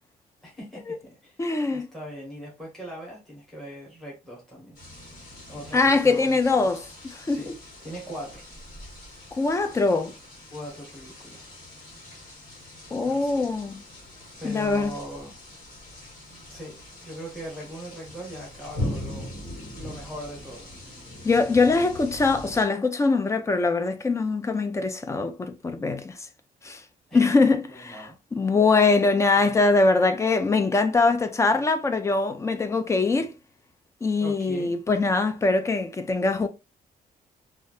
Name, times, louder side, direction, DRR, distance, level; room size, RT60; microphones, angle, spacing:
voice 1, 0.4-1.4 1.7-4.8 5.5-6.7 7.3-7.5 7.8-8.4 10.5-11.4 13.0-13.5 14.4-15.3 16.5-19.3 19.7-20.7 27.1-27.2 27.7-28.2 34.2-34.7, equal, ahead, 1.1 m, -40 dB
voice 2, 1.4-1.9 5.7-7.5 9.3-10.1 12.9-13.8 14.4-14.9 21.2-26.2 26.6-26.8 27.1-33.3 34.0-36.5, left 3 dB, 20° left, 0.3 m, -23 dB
sound 1, 4.7-22.6, left 1 dB, 60° left, 1.5 m, -41 dB
3.3 x 2.3 x 2.5 m
wide cardioid pair, 175°, 16 cm